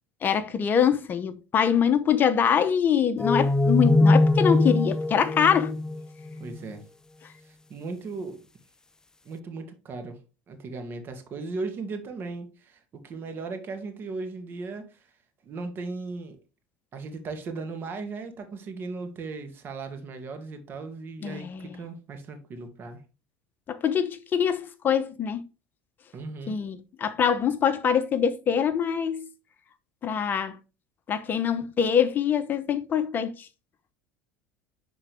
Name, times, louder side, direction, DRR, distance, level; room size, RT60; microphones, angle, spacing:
voice 1, 0.2-5.7 21.2-21.6 23.7-25.4 26.5-29.3 30.0-30.6 31.1-33.3, left 8 dB, 35° left, 0.8 m, -24 dB
sound 1, 3.2-6.6, left 2 dB, 10° left, 0.4 m, -22 dB
voice 2, 6.4-6.8 7.4-8.4 9.3-10.2 10.5-15.1 15.4-16.4 16.9-23.0 26.1-26.6, right 3 dB, 40° right, 2.0 m, -37 dB
10.0 x 3.9 x 3.4 m
hypercardioid pair, 85°, 5 cm